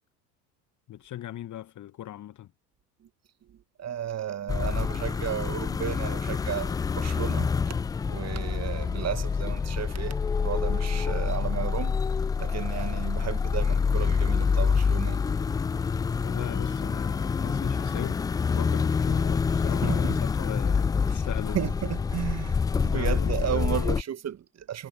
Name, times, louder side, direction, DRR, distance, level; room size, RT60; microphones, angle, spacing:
voice 1, 0.9-2.5 12.7-12.8 16.2-21.7 22.9-23.6, left 12 dB, 35° left, 1.7 m, -39 dB
voice 2, 3.5-7.8 8.0-12.0 12.4-15.2 19.8-20.2 21.1-21.3 21.5-24.9, right 10 dB, 30° right, 1.7 m, -33 dB
sound 1, 4.5-24.0, left 5 dB, 10° left, 0.3 m, -27 dB
figure-of-eight pair, 70°, 49 cm